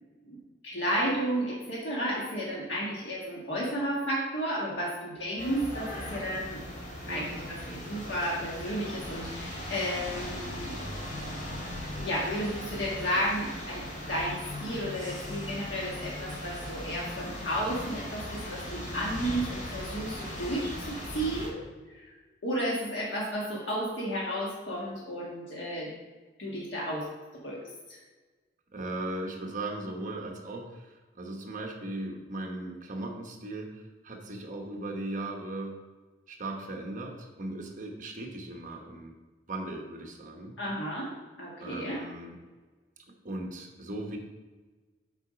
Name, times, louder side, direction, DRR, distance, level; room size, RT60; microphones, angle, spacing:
voice 1, 0.6-6.6 7.1-10.7 12.0-21.6 21.9-22.1 22.4-25.9 26.4-27.1 27.4-27.6 27.9-28.0 40.6-41.1 41.4-42.0, equal, 70° left, -5 dB, 1.6 m, -32 dB
sound 1, 5.4-21.5, left 1 dB, 45° left, 2.7 m, -38 dB
voice 2, 28.7-35.8 36.3-39.1 39.5-40.6 41.6-42.3 43.2-44.2, right 2 dB, 45° right, 1 dB, 1.2 m, -38 dB
7.9 x 4.8 x 5.1 m, 1.3 s
head